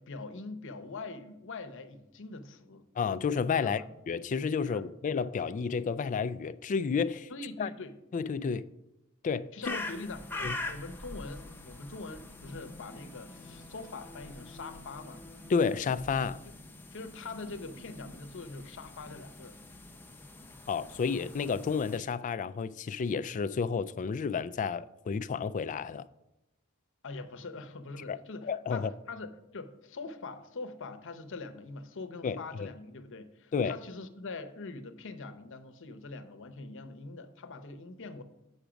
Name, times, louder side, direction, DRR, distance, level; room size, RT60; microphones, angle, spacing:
voice 1, 0.0-2.8 3.6-3.9 4.6-4.8 7.3-8.0 9.5-15.2 16.4-16.5 16.9-19.6 27.0-38.2, left 3 dB, 60° left, 0.8 m, -43 dB
voice 2, 3.0-7.3 7.6-7.7 8.1-8.7 9.2-9.8 10.4-10.6 15.5-16.4 20.7-26.1 28.1-28.9 32.2-32.7 33.5-33.8, left 5 dB, 35° left, 0.3 m, -31 dB
sound 1, 9.5-15.6, left 2 dB, 15° right, 1.5 m, -55 dB
sound 2, 9.6-22.0, left 2 dB, 10° left, 0.6 m, -44 dB
8.0 x 5.0 x 5.9 m
head